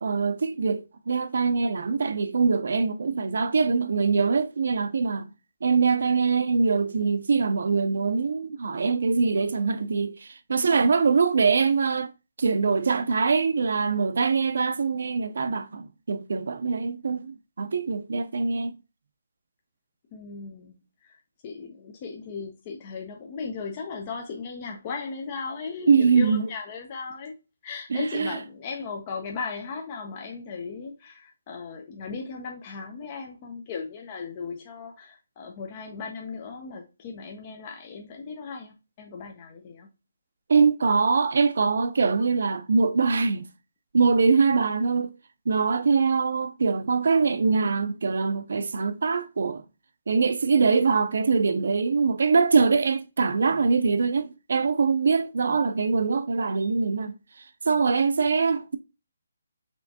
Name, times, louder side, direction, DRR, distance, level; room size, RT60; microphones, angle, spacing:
voice 1, 0.0-5.3 5.6-12.1 12.4-18.8 25.9-26.5 27.9-28.4 40.5-43.5 43.9-45.1 45.5-49.6 50.1-57.2 57.6-58.8, right 4 dB, 65° right, 0.6 m, -23 dB
voice 2, 20.1-27.3 27.6-39.9, left 4 dB, 25° left, 0.6 m, -37 dB
4.3 x 3.4 x 2.7 m
hypercardioid pair, 170°, 0 cm